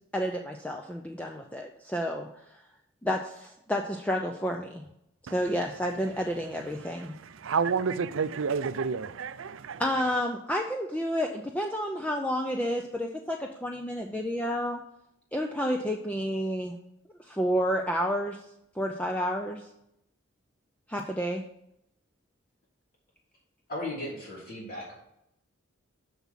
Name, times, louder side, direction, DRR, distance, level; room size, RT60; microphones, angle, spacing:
voice 1, 0.1-2.3 3.0-4.8 5.3-7.2 9.8-14.8 15.3-16.8 17.3-18.4 18.8-19.6 20.9-21.4, equal, 5° left, 0.5 m, -30 dB
voice 2, 7.4-9.8, right 5 dB, 70° right, 0.5 m, -29 dB
voice 3, 23.7-24.9, left 1 dB, 45° left, 3.4 m, -36 dB
7.2 x 6.1 x 5.7 m
head